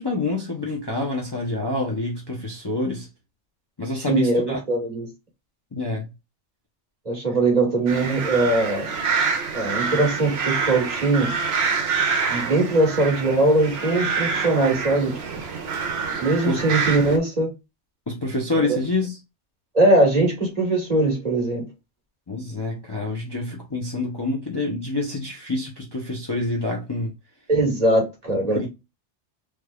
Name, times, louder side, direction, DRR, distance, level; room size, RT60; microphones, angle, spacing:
voice 1, 0.0-3.1 3.8-4.6 5.7-6.1 16.4-16.6 18.1-19.2 22.3-27.1 28.5-28.7, left 2 dB, 25° left, 0.7 m, -27 dB
voice 2, 3.9-5.1 7.0-8.9 9.5-11.3 12.3-15.4 16.2-17.5 18.6-18.8 19.7-21.7 27.5-28.7, right 2 dB, 35° right, 1.5 m, -21 dB
sound 1, 7.9-17.2, right 5 dB, 65° right, 0.9 m, -26 dB
3.4 x 3.2 x 2.3 m
omnidirectional pair, 1.2 m